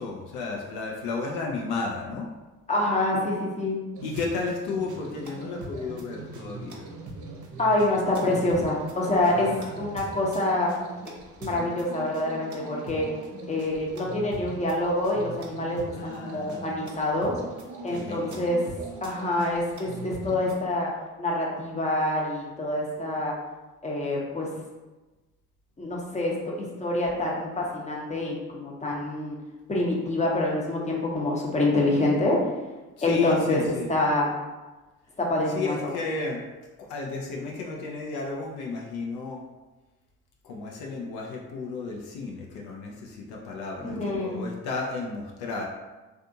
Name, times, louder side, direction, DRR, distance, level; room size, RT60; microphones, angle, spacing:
voice 1, 0.0-2.3 4.0-6.9 9.3-9.8 15.9-16.7 17.9-18.4 33.0-33.9 35.5-36.4 36.8-39.4 40.4-45.7, left 4 dB, 65° left, -1 dB, 0.6 m, -33 dB
voice 2, 2.7-3.8 7.6-10.7 11.4-13.1 13.5-17.4 17.8-18.6 19.0-20.9 21.2-23.3 23.8-24.5 25.8-29.4 29.7-32.5 33.0-34.3 35.2-35.8 43.9-44.4, left 1 dB, 15° left, -3 dB, 0.8 m, -26 dB
sound 1, 3.9-20.6, right 3 dB, 45° right, 0.7 m, -41 dB
2.6 x 2.4 x 2.6 m, 1.2 s
hypercardioid pair, 45°, 40 cm